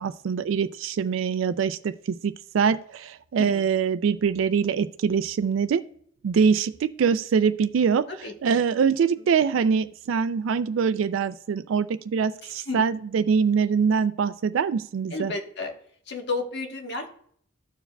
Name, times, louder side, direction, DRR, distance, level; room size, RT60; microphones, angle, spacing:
voice 1, 0.0-5.8 6.2-15.3, right 6 dB, 80° right, 12 dB, 0.3 m, -24 dB
voice 2, 8.2-8.6 12.7-12.8 15.1-15.7 16.1-17.1, left 3 dB, 60° left, 4 dB, 1.2 m, -32 dB
14.0 x 4.7 x 2.2 m, 0.62 s
head